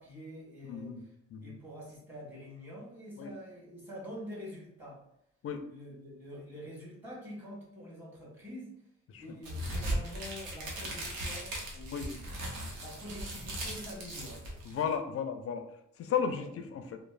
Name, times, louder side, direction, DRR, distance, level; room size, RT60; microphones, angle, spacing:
voice 1, 0.0-1.1 1.4-5.0 5.7-8.7 9.2-12.4 12.7-14.4 16.3-16.6, equal, 5° right, -5 dB, 1.5 m, -46 dB
voice 2, 0.6-1.0 1.3-1.5 3.2-3.3 5.4-5.6 9.1-9.2 11.9-12.1 14.6-15.6 16.0-17.0, left 7 dB, 50° left, 7 dB, 0.4 m, -34 dB
sound 1, 9.4-14.9, right 1 dB, 85° right, 0.8 m, -38 dB
3.0 x 2.0 x 2.4 m, 0.76 s
cardioid pair, 90°, 30 cm